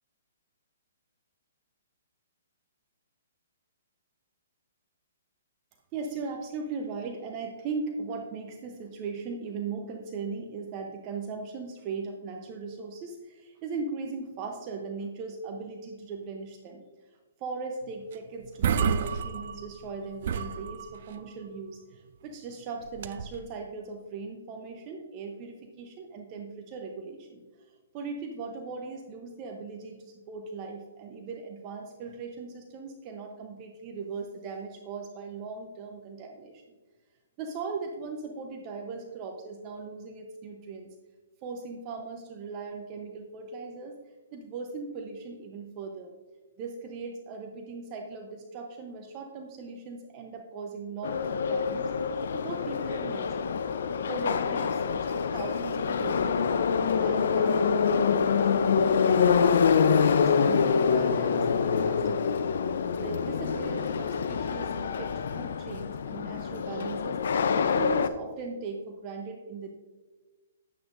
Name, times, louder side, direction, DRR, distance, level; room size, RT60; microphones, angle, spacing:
voice 1, 5.9-16.8 17.4-27.4 27.7-36.6 37.4-40.9 41.4-44.0 44.3-46.1 46.6-53.5 54.0-59.6 60.0-62.4 63.0-67.2 67.6-69.7, right 4 dB, 35° right, 3 dB, 0.8 m, -39 dB
sound 1, 18.1-18.2 18.4-19.9 20.2-21.2 22.9-23.4, right 6 dB, 55° right, 0.5 m, -30 dB
Subway metro underground, 51.0-68.1, left 6 dB, 65° left, 0.5 m, -26 dB
9.5 x 8.6 x 2.6 m, 1.2 s
hypercardioid pair, 130°, 0 cm